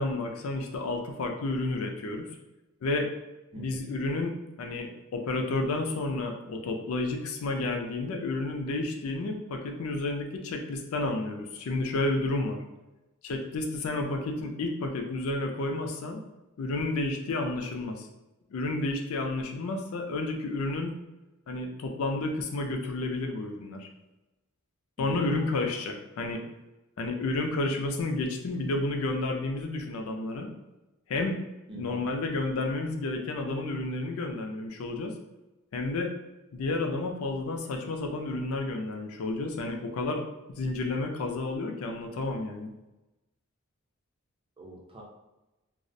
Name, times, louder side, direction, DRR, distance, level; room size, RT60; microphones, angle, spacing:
voice 1, 0.0-2.3 2.8-3.1 3.6-12.6 13.2-16.2 16.6-18.1 18.5-20.9 21.5-23.9 25.0-26.4 27.0-30.5 31.1-31.4 31.7-35.1 35.7-36.1 36.5-40.2 40.5-42.7, left 2 dB, 75° left, 3 dB, 0.4 m, -31 dB
voice 2, 3.5-3.8 25.0-25.4 31.7-32.1 44.6-45.0, right 2 dB, 25° right, -3 dB, 0.5 m, -43 dB
2.4 x 2.0 x 2.6 m, 1.0 s
head